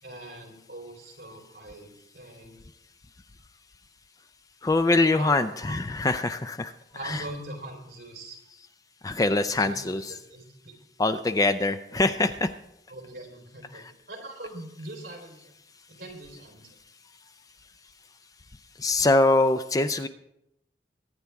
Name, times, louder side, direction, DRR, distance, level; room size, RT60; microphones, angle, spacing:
voice 1, 0.0-2.6 5.2-5.4 5.7-5.8 6.9-8.4 9.6-9.8 10.1-10.8 12.9-15.4 15.9-16.7, right 2 dB, 55° right, 0 dB, 3.9 m, -41 dB
voice 2, 4.6-6.7 7.0-7.3 9.0-10.1 11.0-12.5 13.7-13.9 18.8-20.1, left 2 dB, 20° left, 10 dB, 0.4 m, -24 dB
23.0 x 9.5 x 3.5 m, 0.83 s
head